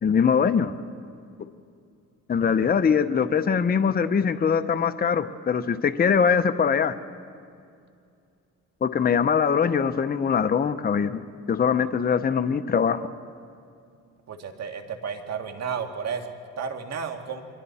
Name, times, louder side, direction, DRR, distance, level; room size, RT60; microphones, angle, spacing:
voice 1, 0.0-0.7 2.3-7.0 8.8-11.2 11.5-13.1, left 6 dB, 30° left, 10 dB, 0.8 m, -22 dB
voice 2, 14.3-17.4, right 6 dB, 60° right, 5 dB, 2.1 m, -32 dB
29.5 x 23.5 x 4.2 m, 2.4 s
cardioid pair, 90°, 30 cm